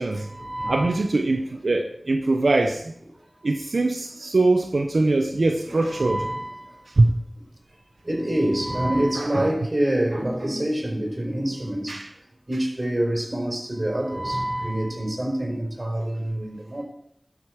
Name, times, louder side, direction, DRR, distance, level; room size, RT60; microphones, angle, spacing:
voice 1, 0.1-1.0 5.6-6.7 8.0-12.0 12.5-16.8, right 1 dB, 40° right, 4.5 m, -26 dB
voice 2, 0.7-2.8 3.4-6.2 7.0-7.1 9.2-9.5 11.9-12.1, right 2 dB, 90° right, 0.7 m, -22 dB
12.0 x 5.1 x 6.4 m
wide cardioid pair, 45°, 0 cm